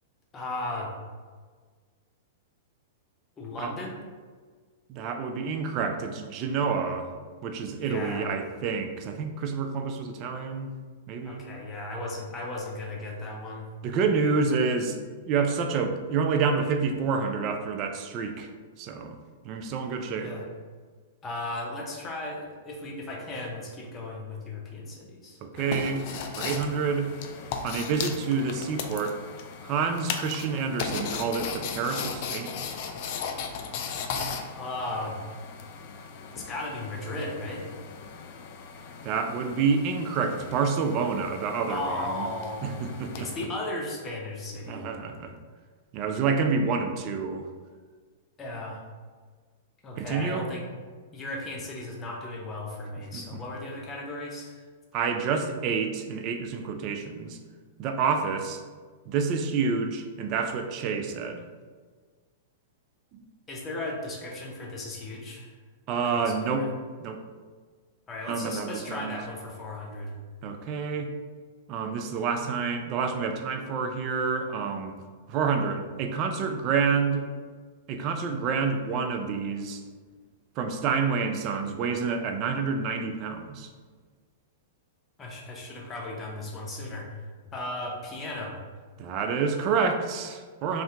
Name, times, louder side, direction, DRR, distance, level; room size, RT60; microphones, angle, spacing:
voice 1, 0.3-0.9 3.4-4.0 7.8-8.3 11.2-13.7 20.1-20.5 21.2-25.9 34.5-35.2 36.3-37.7 41.7-44.9 48.4-48.8 49.8-50.6 51.1-54.6 63.5-65.5 66.0-66.7 68.1-70.1 85.2-87.1 87.5-88.6, left 2 dB, 20° left, -1 dB, 0.6 m, -36 dB
voice 2, 4.9-7.1 7.4-10.7 11.1-11.4 13.8-15.0 15.3-18.5 18.8-19.1 19.4-20.3 25.4-26.1 26.4-27.1 27.6-29.2 29.6-32.6 39.0-42.3 42.6-43.3 44.7-45.3 45.9-47.5 50.0-50.5 53.1-53.2 54.9-57.4 57.8-58.6 59.1-61.4 63.1-63.2 65.9-66.7 67.0-67.2 68.3-69.2 70.4-71.1 71.7-75.0 75.3-77.2 77.9-79.8 80.6-83.7 89.0-90.8, right 5 dB, 40° right, 6 dB, 0.3 m, -28 dB
sound 1, 25.6-43.4, left 6 dB, 50° left, 0.3 m, -37 dB
2.7 x 2.4 x 3.4 m, 1.5 s
hypercardioid pair, 130°, 0 cm